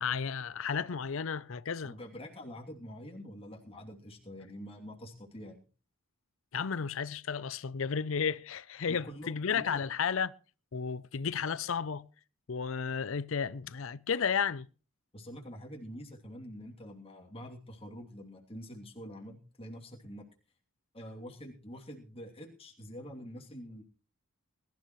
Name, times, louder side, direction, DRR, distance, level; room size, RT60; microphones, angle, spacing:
voice 1, 0.0-1.9 6.5-10.3 10.7-12.0 12.5-14.7, left 6 dB, 65° left, 0.5 m, -33 dB
voice 2, 1.8-5.6 8.9-9.8 15.1-20.3 20.9-23.8, equal, 25° left, 2.8 m, -46 dB
21.0 x 13.0 x 3.1 m
head